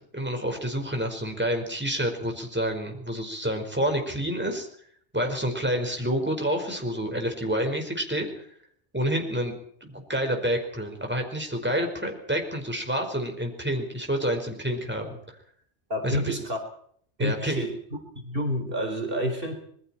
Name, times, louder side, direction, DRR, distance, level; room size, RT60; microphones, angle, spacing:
voice 1, 0.1-4.7 5.1-8.5 8.9-9.5 9.8-15.2 16.0-16.4 17.2-17.6, equal, 10° right, 3 dB, 5.0 m, -28 dB
voice 2, 15.9-16.6 17.2-17.7 18.2-19.5, equal, 50° right, 3 dB, 4.3 m, -28 dB
27.0 x 22.5 x 4.5 m, 0.62 s
omnidirectional pair, 1.2 m